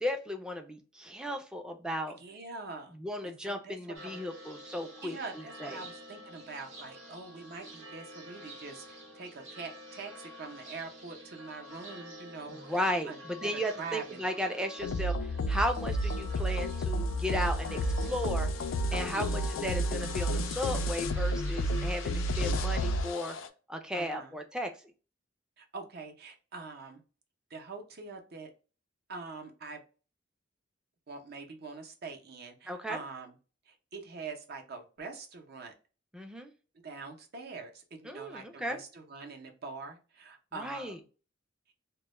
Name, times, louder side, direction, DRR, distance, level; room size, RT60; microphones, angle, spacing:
voice 1, 0.0-2.2 3.0-5.8 12.6-18.5 18.9-23.4 23.7-24.7 32.7-33.0 36.1-36.5 38.0-38.8 40.6-41.0, equal, 5° right, 5 dB, 0.4 m, -35 dB
voice 2, 2.1-3.0 3.2-4.1 5.0-14.2 18.9-19.4 23.9-24.4 25.6-27.0 27.5-28.5 29.1-29.8 31.1-33.3 33.7-35.7 36.8-41.0, right 4 dB, 55° right, 4 dB, 0.6 m, -44 dB
sound 1, 3.9-23.5, equal, 80° right, 0.9 m, -49 dB
sound 2, 14.8-23.5, equal, 80° left, 0.3 m, -31 dB
2.2 x 2.1 x 2.9 m, 0.35 s
head